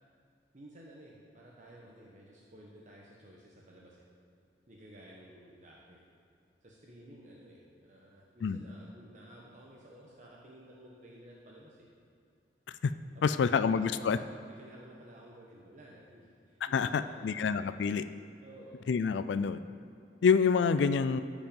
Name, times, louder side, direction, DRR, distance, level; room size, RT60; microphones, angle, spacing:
voice 1, 0.5-4.1 4.7-6.0 6.6-11.8 13.1-14.2 14.6-17.8 18.4-18.7, right 1 dB, 45° right, -3 dB, 1.1 m, -53 dB
voice 2, 13.2-14.2 16.7-18.0 18.9-19.6 20.2-21.2, left 6 dB, 80° left, 12 dB, 0.3 m, -27 dB
14.0 x 5.3 x 5.3 m, 2.6 s
head